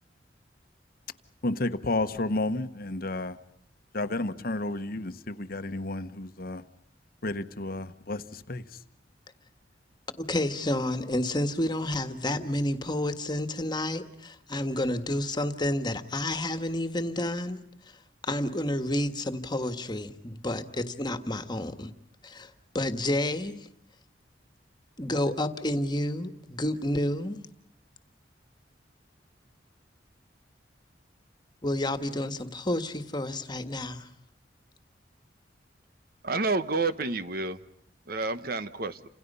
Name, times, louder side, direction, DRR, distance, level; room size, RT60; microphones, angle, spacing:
voice 1, 1.4-3.4 3.9-6.6 7.2-8.6, left 2 dB, 55° left, 1.2 m, -31 dB
voice 2, 10.2-17.6 18.2-21.9 22.2-23.6 25.0-27.4 31.6-34.1, left 1 dB, 25° left, 1.6 m, -30 dB
voice 3, 36.2-37.6 38.1-39.0, right 3 dB, 55° right, 1.2 m, -29 dB
30.0 x 27.0 x 5.6 m
head